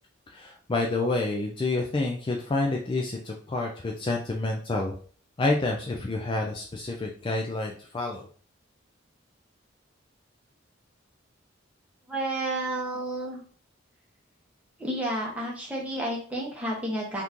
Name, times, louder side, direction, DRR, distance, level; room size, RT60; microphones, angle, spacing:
voice 1, 0.3-4.9 5.4-8.3, left 2 dB, 25° left, 0 dB, 0.3 m, -28 dB
voice 2, 12.1-13.4 14.8-17.2, right 1 dB, 5° right, -4 dB, 1.0 m, -31 dB
2.9 x 2.5 x 3.5 m, 0.44 s
head